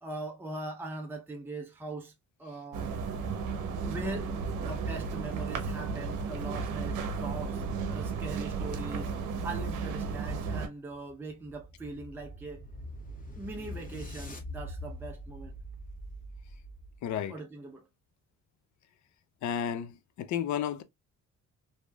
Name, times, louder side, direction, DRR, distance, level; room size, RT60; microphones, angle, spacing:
voice 1, 0.0-2.1 2.4-2.9 3.8-4.3 4.6-7.6 7.9-9.1 9.4-12.6 13.4-15.6 17.3-17.9, right 2 dB, 5° right, 0.6 m, -41 dB
sound 1, 2.7-10.7, right 5 dB, 90° right, 0.7 m, -34 dB
sound 2, 10.9-17.1, equal, 30° left, 1.3 m, -43 dB
voice 2, 17.0-17.4 19.4-20.8, left 9 dB, 70° left, 0.5 m, -32 dB
3.2 x 2.8 x 2.2 m
cardioid pair, 90°, 30 cm